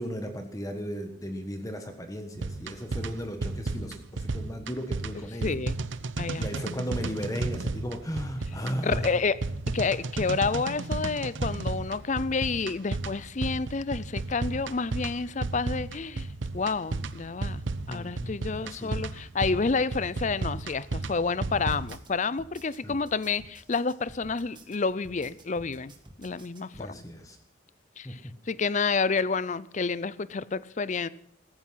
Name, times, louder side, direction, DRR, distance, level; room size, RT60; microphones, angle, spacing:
voice 1, 0.0-5.6 6.3-9.2 17.9-18.9 22.8-23.0 26.7-27.4 28.0-28.3, equal, 15° left, 1.3 m, -36 dB
sound 1, 2.4-22.0, right 3 dB, 65° right, 0.8 m, -33 dB
voice 2, 5.4-5.8 6.2-6.4 8.8-9.4 9.7-16.3 16.5-17.6 17.9-25.9 26.2-27.0 28.0-28.2 28.5-31.1, left 4 dB, 35° left, 0.5 m, -29 dB
sound 2, 21.5-26.9, right 1 dB, 25° right, 1.9 m, -51 dB
16.0 x 14.5 x 5.7 m
head